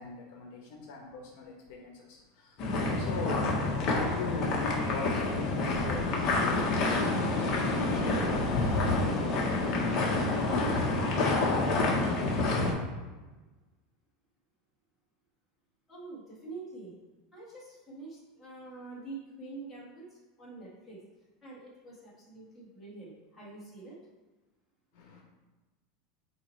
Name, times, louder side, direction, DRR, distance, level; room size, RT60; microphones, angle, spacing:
voice 1, 0.0-9.0 24.9-25.2, left 4 dB, 55° left, 0 dB, 1.1 m, -41 dB
sound 1, 2.6-12.7, left 2 dB, 35° left, 1.1 m, -28 dB
voice 2, 15.9-16.9 17.3-20.1 20.4-21.0 21.4-24.0, right 3 dB, 5° left, -8 dB, 1.8 m, -46 dB
8.4 x 3.0 x 4.4 m, 1.2 s
supercardioid pair, 175°, 0 cm